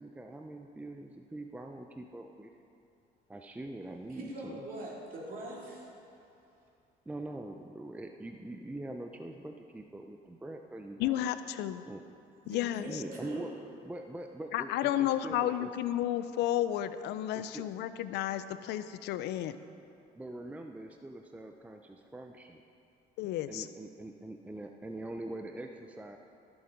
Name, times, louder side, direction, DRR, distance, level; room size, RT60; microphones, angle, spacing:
voice 1, 0.0-2.5 3.3-4.6 7.1-11.3 11.8-12.0 12.9-13.5 13.8-15.7 17.3-17.6 20.2-22.6 23.5-26.2, right 1 dB, 10° right, 4 dB, 0.5 m, -43 dB
voice 2, 4.1-5.9 12.4-13.5, right 1 dB, 55° right, -3 dB, 2.9 m, -42 dB
voice 3, 11.0-11.8 12.5-13.0 14.5-19.6 23.2-23.7, left 12 dB, 85° left, 13 dB, 0.5 m, -32 dB
14.5 x 7.1 x 5.2 m, 2.6 s
cardioid pair, 110°, 17 cm